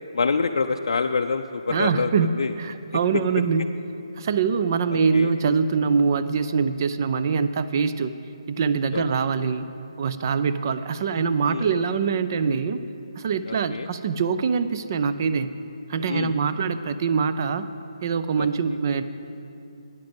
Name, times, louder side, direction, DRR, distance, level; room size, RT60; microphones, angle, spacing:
voice 1, 0.1-2.5 3.1-3.2 4.9-5.3 8.9-9.0 11.5-11.7 13.5-13.9 16.1-16.3 18.4-18.5, left 4 dB, 70° left, 5 dB, 0.4 m, -26 dB
voice 2, 1.7-2.3 2.6-3.6 4.2-8.1 8.5-9.7 10.0-12.8 13.2-15.5 15.9-17.7 18.0-19.0, right 5 dB, 35° right, 12 dB, 0.5 m, -24 dB
13.0 x 9.6 x 5.3 m, 2.7 s
hypercardioid pair, 165°, 3 cm